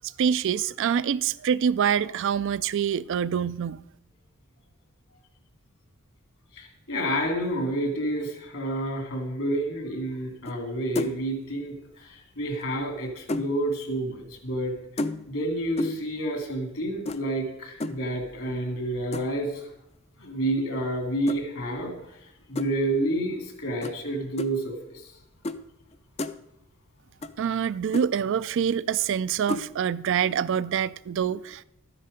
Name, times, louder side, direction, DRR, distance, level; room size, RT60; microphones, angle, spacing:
voice 1, 0.2-3.8 27.4-31.6, right 8 dB, 55° right, 0.3 m, -25 dB
voice 2, 6.5-14.7 15.3-19.7 20.2-22.2 22.5-25.1, right 1 dB, 65° left, 2.6 m, -29 dB
sound 1, 10.5-10.7 11.0-11.3 12.5-13.6 15.0-15.4 15.8-16.1 17.1-17.2 17.8-18.0 19.1-19.5 21.3-21.4 22.6-22.7 23.8-24.0 24.4-24.5 25.4-25.6 25.9-26.4 27.2-27.3 27.6-27.7 27.9-28.1 29.5-29.7, left 2 dB, 30° left, 0.4 m, -31 dB
12.5 x 9.7 x 5.1 m
head